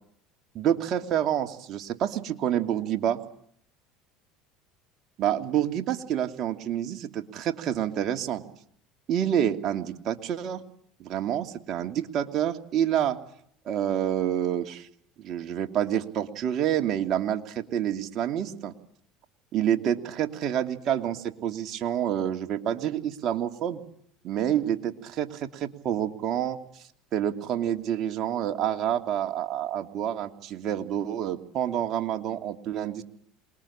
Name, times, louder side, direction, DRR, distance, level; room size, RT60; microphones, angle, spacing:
voice 1, 0.5-3.2 5.2-8.4 9.1-10.6 11.0-13.2 13.6-14.9 15.2-18.7 19.5-23.8 24.2-26.6 27.1-33.0, right 10 dB, 50° right, 6 dB, 2.7 m, -28 dB
27.5 x 21.0 x 8.7 m, 0.67 s
hypercardioid pair, 85°, 0 cm